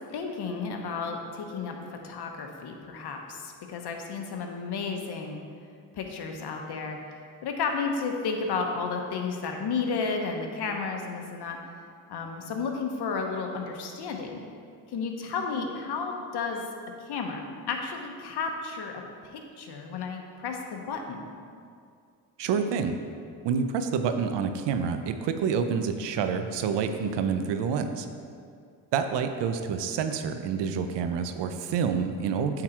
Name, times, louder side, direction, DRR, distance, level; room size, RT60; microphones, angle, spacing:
voice 1, 0.1-5.4 5.9-7.0 7.4-11.6 12.1-14.4 14.9-16.6 17.0-18.9 19.2-21.2, left 5 dB, 70° left, 3 dB, 1.0 m, -32 dB
voice 2, 22.4-23.0 23.4-28.1 28.9-32.6, right 6 dB, 80° right, 8 dB, 0.7 m, -28 dB
8.5 x 4.0 x 4.4 m, 2.3 s
cardioid pair, 70°, 41 cm